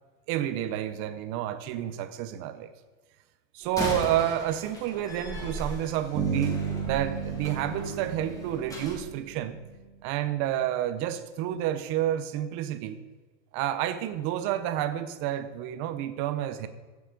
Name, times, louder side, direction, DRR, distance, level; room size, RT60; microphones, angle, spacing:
voice 1, 0.3-2.7 3.5-9.6 10.0-13.0 13.5-16.7, right 11 dB, 30° right, 11 dB, 0.6 m, -30 dB
Slam, 3.6-9.0, equal, 10° left, 1.7 m, -38 dB
Bass guitar, 6.1-9.9, right 6 dB, 15° right, 1.6 m, -33 dB
15.0 x 7.0 x 3.9 m, 1.4 s
supercardioid pair, 165°, 41 cm